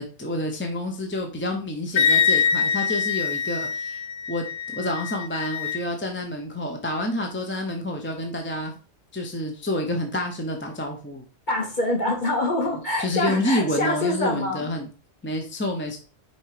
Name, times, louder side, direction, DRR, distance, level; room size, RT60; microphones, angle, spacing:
voice 1, 0.0-4.0 4.3-4.5 4.7-8.7 9.1-11.2 13.0-14.9 15.2-16.0, left 1 dB, 10° left, 2 dB, 0.8 m, -28 dB
Wind instrument woodwind instrument, 2.0-5.8, left 6 dB, 60° left, 0.6 m, -24 dB
voice 2, 11.5-14.7, left 1 dB, 45° left, 0 dB, 2.1 m, -25 dB
5.5 x 4.6 x 4.9 m, 0.38 s
omnidirectional pair, 1.1 m